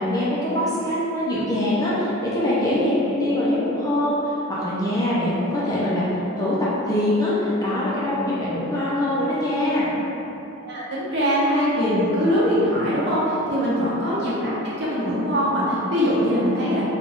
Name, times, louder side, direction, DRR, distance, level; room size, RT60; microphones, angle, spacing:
voice 1, 0.0-6.0 6.4-6.6 6.9-9.9 13.5-13.7, left 1 dB, 15° left, -9 dB, 0.5 m, -23 dB
voice 2, 10.6-16.8, equal, 55° right, -9 dB, 1.0 m, -22 dB
3.8 x 2.3 x 3.5 m, 3.0 s
head